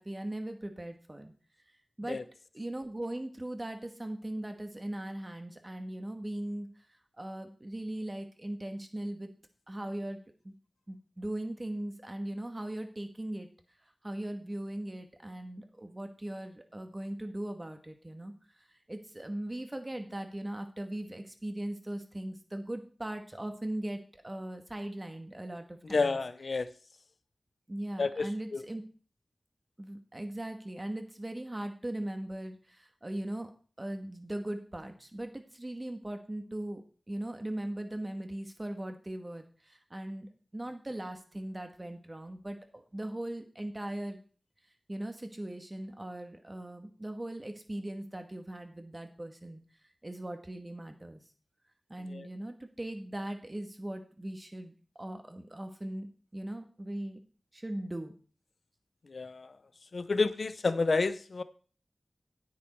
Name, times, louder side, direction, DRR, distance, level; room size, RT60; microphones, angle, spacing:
voice 1, 0.0-1.3 2.0-2.2 2.5-6.7 7.2-9.3 9.7-10.5 10.9-13.5 14.0-18.3 18.6-26.2 27.7-28.8 29.8-33.5 33.8-36.8 37.1-44.2 44.9-49.6 50.0-51.2 51.9-57.2 57.5-58.1, right 1 dB, 30° right, 6 dB, 2.0 m, -39 dB
voice 2, 25.9-26.7 28.0-28.6 52.1-52.3 59.1-59.5 59.9-61.4, left 3 dB, 75° left, 14 dB, 0.7 m, -30 dB
9.5 x 9.4 x 4.6 m, 0.40 s
wide cardioid pair, 55°, 0 cm